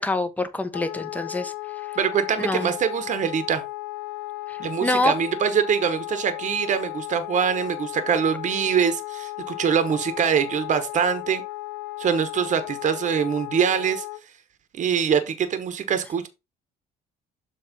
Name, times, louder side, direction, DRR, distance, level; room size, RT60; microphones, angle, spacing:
voice 1, 0.0-1.5 2.4-2.7 4.5-5.1, left 2 dB, 10° left, 0.9 m, -25 dB
Wind instrument woodwind instrument, 0.7-14.2, left 19 dB, 90° left, 0.8 m, -35 dB
voice 2, 2.0-3.6 4.6-11.4 12.0-14.0 14.8-16.3, right 7 dB, 45° right, 1.1 m, -24 dB
7.3 x 3.1 x 5.2 m
cardioid pair, 110°, 17 cm